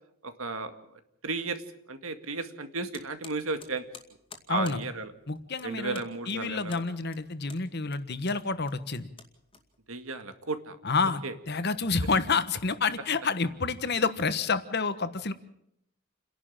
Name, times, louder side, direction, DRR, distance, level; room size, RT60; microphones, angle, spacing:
voice 1, 0.2-0.7 1.2-1.6 1.9-3.8 4.5-5.1 5.6-6.8 9.9-10.8 11.2-11.3, right 3 dB, 80° right, 9 dB, 2.0 m, -34 dB
sound 1, 2.9-10.1, left 5 dB, 25° left, 2.3 m, -51 dB
voice 2, 4.5-4.8 5.3-9.1 10.8-15.3, left 4 dB, 50° left, 12 dB, 1.3 m, -29 dB
29.0 x 11.5 x 9.0 m, 0.77 s
head